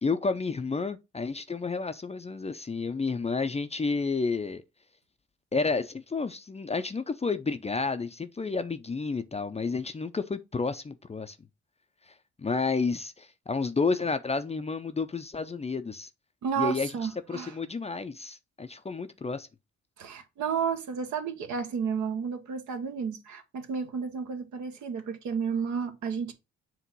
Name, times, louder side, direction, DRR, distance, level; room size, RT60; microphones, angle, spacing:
voice 1, 0.0-4.6 5.5-11.4 12.4-16.1 16.6-16.9 17.3-19.5, left 4 dB, 20° left, 0.6 m, -30 dB
voice 2, 16.4-17.6 20.0-26.3, right 6 dB, 60° right, 1.1 m, -32 dB
7.5 x 2.9 x 5.4 m
figure-of-eight pair, 40°, 33 cm